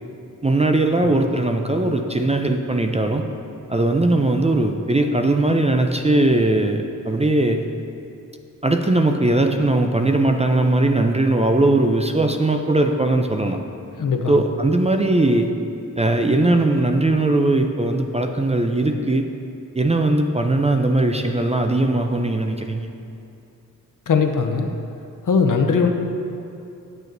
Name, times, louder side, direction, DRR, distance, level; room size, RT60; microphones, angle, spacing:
voice 1, 0.4-3.2 3.7-7.7 8.6-13.6 14.3-15.5 16.0-19.2 19.7-22.9, right 2 dB, 20° right, 4 dB, 0.4 m, -19 dB
voice 2, 14.0-14.4 24.1-24.7 25.3-25.9, left 5 dB, 65° left, 5 dB, 0.6 m, -20 dB
9.2 x 7.6 x 2.6 m, 2.7 s
wide cardioid pair, 75°, 34 cm